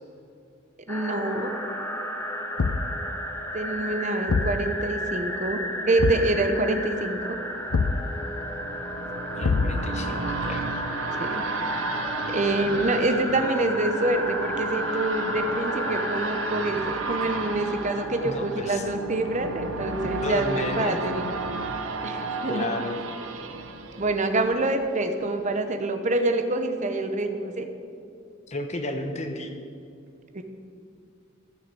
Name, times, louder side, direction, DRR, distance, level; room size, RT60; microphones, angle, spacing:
sound 1, 0.9-19.9, equal, 10° left, 1.0 m, -33 dB
voice 1, 0.9-1.5 3.5-5.6 5.9-7.4 11.2-11.4 12.3-21.3 22.0-22.7 24.0-27.7 30.3-30.4, right 2 dB, 35° right, 7 dB, 0.9 m, -26 dB
Thump thud, 2.6-3.0 4.3-4.6 6.0-6.3 7.7-8.1 9.4-10.0, left 4 dB, 85° left, 0.5 m, -24 dB
sound 2, 7.1-24.8 25.3-25.4, right 3 dB, 80° right, 0.9 m, -34 dB
voice 2, 9.3-10.7 18.2-18.8 20.0-21.0 22.5-23.0 28.5-29.5, left 2 dB, 35° left, 5 dB, 1.1 m, -32 dB
14.5 x 6.6 x 6.8 m, 2.5 s
head